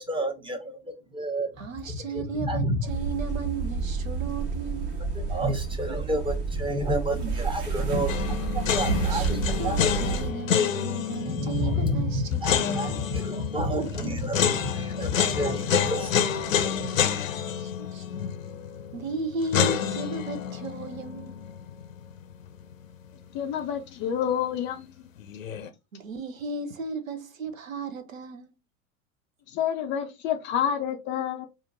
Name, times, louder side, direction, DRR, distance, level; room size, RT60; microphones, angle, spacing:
voice 1, 0.0-2.9 5.1-10.1 11.2-17.1, equal, 10° right, 1.1 m, -30 dB
voice 2, 1.6-5.0 9.1-12.8 17.5-18.1 18.9-21.4 25.9-28.5, right 4 dB, 80° right, 0.7 m, -35 dB
sound 1, 2.9-10.3, right 4 dB, 55° right, 1.4 m, -29 dB
sound 2, 8.1-23.1 23.3-23.4 25.2-25.7, left 8 dB, 75° left, 0.6 m, -29 dB
voice 3, 23.3-24.9 29.5-31.5, left 9 dB, 30° left, 0.4 m, -28 dB
4.9 x 2.5 x 2.5 m
figure-of-eight pair, 75°, 40 cm